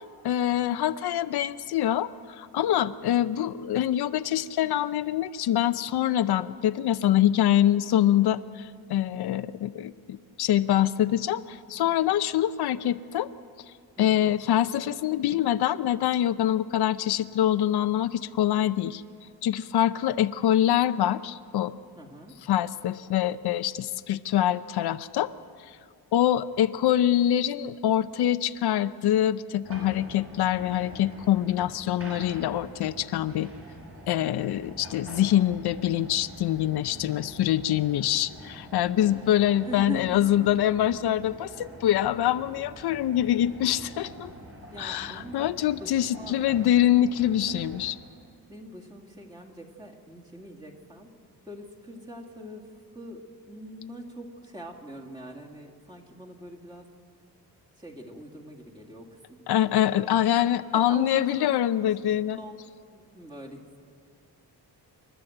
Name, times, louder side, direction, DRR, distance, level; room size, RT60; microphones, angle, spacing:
voice 1, 0.2-13.3 14.0-19.0 19.4-21.7 22.5-25.3 25.7-25.8 26.1-33.5 34.1-44.3 44.8-48.0 59.5-62.4, left 11 dB, 85° left, 12 dB, 0.6 m, -25 dB
voice 2, 2.7-3.0 14.0-14.3 22.0-22.3 39.0-39.3 39.6-40.5 44.7-45.5 45.8-46.4 48.5-51.1 51.5-56.9 57.8-59.4 60.7-61.5 61.9-62.0 62.3-62.5 62.9-63.8, right 1 dB, 10° right, -1 dB, 2.1 m, -42 dB
sound 1, 29.6-47.9, right 1 dB, 35° right, 5.5 m, -46 dB
27.5 x 12.5 x 7.9 m, 2.2 s
wide cardioid pair, 165°, 38 cm